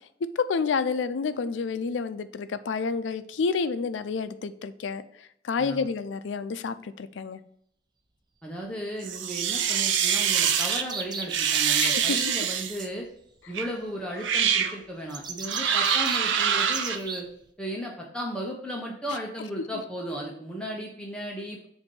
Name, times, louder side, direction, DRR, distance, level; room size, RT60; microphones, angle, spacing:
voice 1, 0.4-7.4 11.8-12.2, left 5 dB, 85° left, 13 dB, 0.4 m, -29 dB
voice 2, 8.4-13.1 13.5-17.3 17.6-21.7, equal, 5° left, -2 dB, 0.7 m, -35 dB
sound 1, 9.0-10.8 11.3-12.9 13.5-13.7 14.2-14.7 15.4-17.0, right 8 dB, 85° right, 0.5 m, -25 dB
sound 2, 10.0-12.3 15.1-17.2, right 4 dB, 25° right, 0.5 m, -34 dB
6.9 x 2.6 x 5.3 m, 0.70 s
head